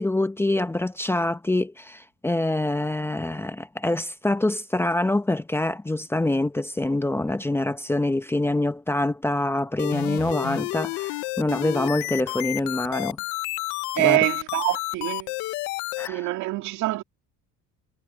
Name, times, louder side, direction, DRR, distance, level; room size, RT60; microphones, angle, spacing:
voice 1, 0.0-13.2 14.0-14.2 16.0-16.3, left 2 dB, 10° left, 0.8 m, -25 dB
sound 1, 9.8-16.1, left 21 dB, 75° left, 0.7 m, -30 dB
voice 2, 13.9-15.3 16.1-17.0, right 18 dB, 75° right, 2.5 m, -24 dB
cardioid pair, 130°, 29 cm